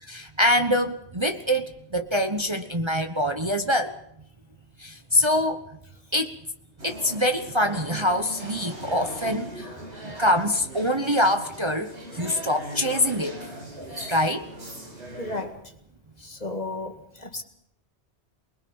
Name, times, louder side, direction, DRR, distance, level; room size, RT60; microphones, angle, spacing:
voice 1, 0.0-3.9 4.8-5.6 6.1-6.3 6.8-9.7 10.0-13.5 13.8-14.5, left 1 dB, 25° right, 6 dB, 1.2 m, -25 dB
sound 1, 6.8-15.4, right 1 dB, 75° right, 5.6 m, -40 dB
voice 2, 15.2-15.5 16.2-17.4, left 2 dB, 35° left, 6 dB, 2.2 m, -33 dB
28.0 x 21.0 x 5.5 m, 0.73 s
omnidirectional pair, 1.2 m